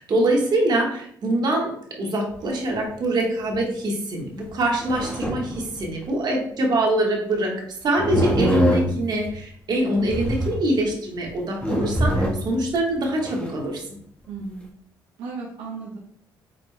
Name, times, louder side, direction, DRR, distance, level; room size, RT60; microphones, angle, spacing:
voice 1, 0.0-14.0, right 1 dB, 55° right, 0 dB, 1.4 m, -24 dB
sound 1, 2.3-2.4 2.7-2.8 3.6-3.7 4.5-6.0 8.0-9.3 10.0-10.8 11.2-11.3 11.6-12.6 13.0-13.5, equal, 15° left, 1.3 m, -24 dB
voice 2, 14.3-14.7 15.2-16.0, right 4 dB, 80° right, -3 dB, 0.8 m, -34 dB
4.9 x 4.2 x 2.2 m, 0.66 s
supercardioid pair, 65°, 9 cm